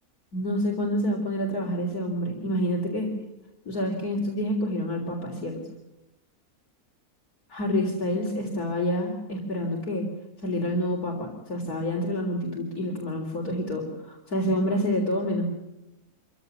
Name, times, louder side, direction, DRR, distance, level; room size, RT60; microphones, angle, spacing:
voice 1, 0.3-3.1 3.7-5.7 7.5-10.1 10.4-15.5, equal, 75° left, -1 dB, 4.3 m, -28 dB
26.0 x 16.0 x 9.7 m, 0.96 s
omnidirectional pair, 1.6 m